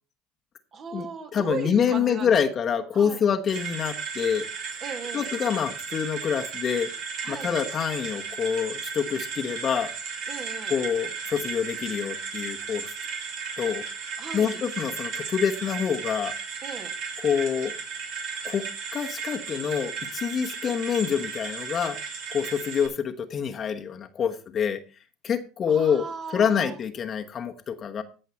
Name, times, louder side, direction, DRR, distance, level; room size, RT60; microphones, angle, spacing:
voice 1, 0.7-2.4 2.9-3.2 4.8-5.3 7.2-7.6 10.3-10.7 14.2-14.6 16.6-16.9 25.7-26.8, right 5 dB, 45° right, 6 dB, 2.2 m, -37 dB
voice 2, 1.3-4.4 5.1-6.9 7.3-9.9 10.7-12.9 13.6-13.8 14.3-16.3 17.2-17.7 18.4-18.6 18.9-22.0 22.3-24.8 25.2-26.1 26.3-28.0, left 7 dB, 40° left, 6 dB, 1.1 m, -26 dB
sound 1, 3.5-22.9, right 5 dB, 60° right, 3.1 m, -35 dB
15.5 x 5.6 x 4.6 m, 0.35 s
supercardioid pair, 90°, 0 cm